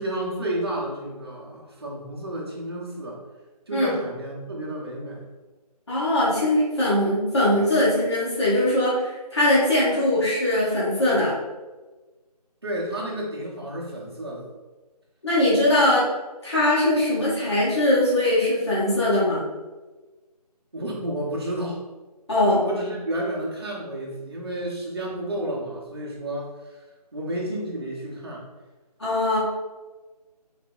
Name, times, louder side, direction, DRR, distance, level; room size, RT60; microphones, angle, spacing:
voice 1, 0.0-3.2 3.7-5.2 12.6-14.5 20.7-21.8 22.6-26.8 27.1-28.4, right 1 dB, 40° right, -4 dB, 0.8 m, -31 dB
voice 2, 5.9-11.3 15.2-16.0 16.4-19.4 22.3-22.6 29.0-29.4, left 1 dB, 40° left, -9 dB, 1.3 m, -21 dB
3.9 x 2.1 x 3.7 m, 1.2 s
figure-of-eight pair, 175°, 21 cm